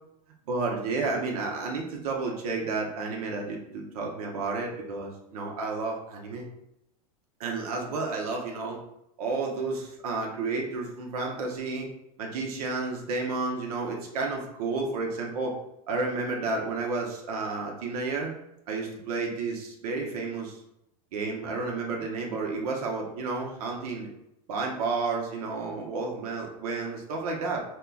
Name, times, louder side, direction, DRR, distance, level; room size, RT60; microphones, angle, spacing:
voice 1, 0.5-6.5 7.4-8.8 9.2-11.9 12.2-15.6 15.9-18.3 18.7-20.6 21.1-24.1 24.5-27.6, right 3 dB, 80° right, 0 dB, 0.8 m, -31 dB
5.3 x 2.2 x 2.3 m, 0.83 s
supercardioid pair, 180°, 19 cm